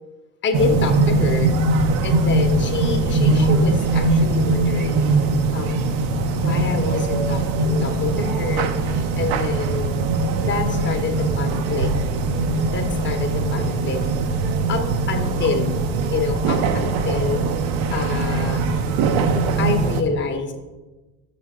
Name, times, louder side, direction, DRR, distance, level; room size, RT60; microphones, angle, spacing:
voice 1, 0.4-1.5 2.0-5.1 5.5-5.9 6.3-9.9 10.4-11.9 12.7-14.0 14.7-15.8 16.1-17.4 17.9-18.7 19.6-20.5, left 4 dB, 30° left, 5 dB, 1.0 m, -27 dB
sound 1, 0.5-20.0, right 3 dB, 65° right, 0.7 m, -21 dB
6.2 x 5.7 x 3.6 m, 1.2 s
supercardioid pair, 100°, 39 cm